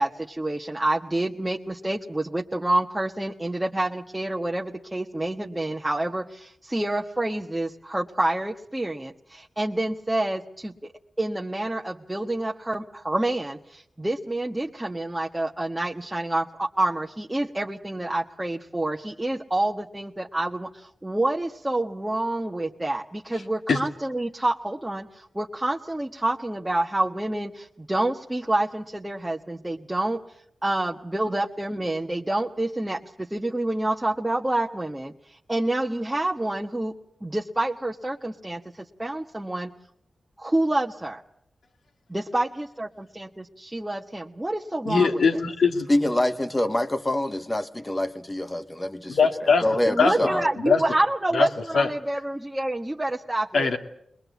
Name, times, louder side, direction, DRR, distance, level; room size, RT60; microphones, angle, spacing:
voice 1, 0.0-10.9 11.2-30.2 30.6-36.9 37.2-39.7 40.4-41.2 42.1-45.2 49.9-53.7, right 1 dB, 15° right, 0 dB, 1.3 m, -28 dB
voice 2, 44.8-45.9 49.2-49.6 50.0-50.3 50.6-50.8 51.3-51.5 51.7-51.9 53.5-53.8, left 5 dB, 85° left, 4 dB, 2.2 m, -21 dB
voice 3, 45.9-49.1 49.4-50.5, left 1 dB, 25° left, 8 dB, 1.8 m, -25 dB
21.5 x 21.0 x 8.3 m, 0.72 s
cardioid pair, 50°, 0 cm